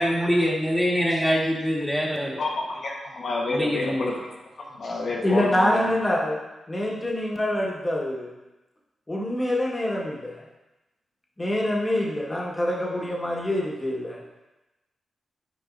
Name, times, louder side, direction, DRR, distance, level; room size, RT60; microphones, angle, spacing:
voice 1, 0.0-2.4 3.5-4.1, equal, ahead, -4 dB, 1.6 m, -24 dB
voice 2, 2.4-4.3 4.6-5.9, left 2 dB, 60° left, -3 dB, 1.2 m, -29 dB
voice 3, 5.2-6.4 6.7-8.3 9.1-10.5 11.4-14.2, left 1 dB, 20° left, -3 dB, 1.5 m, -25 dB
9.2 x 4.7 x 2.6 m, 1.0 s
cardioid pair, 75°, 0 cm